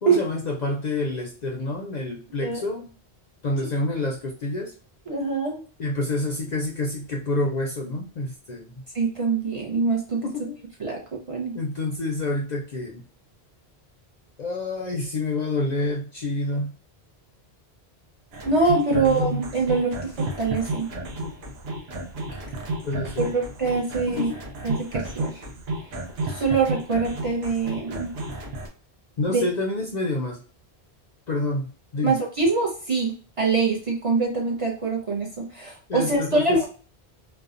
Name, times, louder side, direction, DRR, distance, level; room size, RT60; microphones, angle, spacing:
voice 1, 0.0-2.9 3.4-4.7 5.8-8.7 10.2-10.6 11.5-13.0 14.4-16.7 18.9-19.4 21.2-21.3 22.8-23.3 24.1-24.4 29.2-30.4 31.3-31.7 31.9-32.2 35.9-36.7, left 2 dB, 55° left, 0 dB, 0.5 m, -28 dB
voice 2, 5.1-5.6 8.9-10.2 10.8-11.0 11.3-11.6 18.4-20.9 23.2-24.3 24.6-25.4 26.3-28.1 29.3-29.4 32.0-36.7, right 4 dB, 40° right, -2 dB, 0.5 m, -24 dB
sound 1, 18.3-28.7, right 2 dB, 70° right, 0.9 m, -32 dB
2.7 x 2.1 x 2.4 m, 0.40 s
omnidirectional pair, 1.1 m